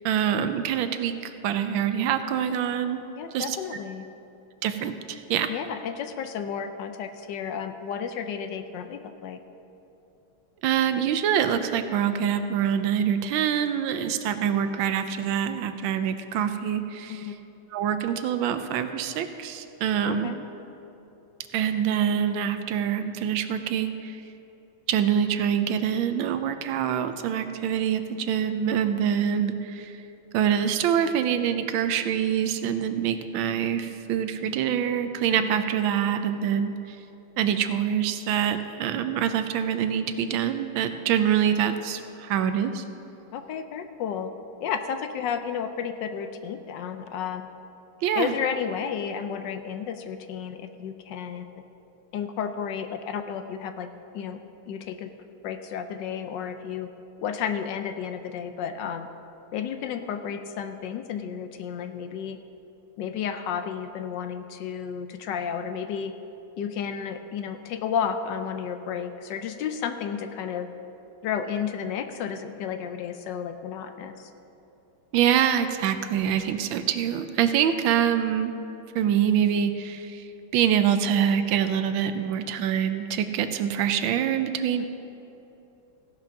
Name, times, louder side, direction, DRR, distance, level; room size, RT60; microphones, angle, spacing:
voice 1, 0.0-3.0 3.3-3.6 4.6-5.5 10.6-17.3 17.7-20.3 21.5-24.2 24.9-29.9 30.3-37.0 37.4-42.8 48.0-48.3 75.1-78.5 78.9-80.3 80.5-84.9, right 9 dB, 75° right, 9 dB, 1.3 m, -25 dB
voice 2, 3.2-4.0 5.5-9.4 17.1-17.4 20.1-20.4 35.3-35.5 43.3-44.3 44.6-47.5 48.2-51.5 52.1-53.9 54.1-54.4 54.7-55.1 55.4-56.9 57.2-59.1 59.5-62.4 63.0-66.1 66.6-70.7 71.2-74.3 84.8-84.9, left 7 dB, 75° left, 8 dB, 1.1 m, -32 dB
16.5 x 5.8 x 5.8 m, 2.9 s
omnidirectional pair, 2.3 m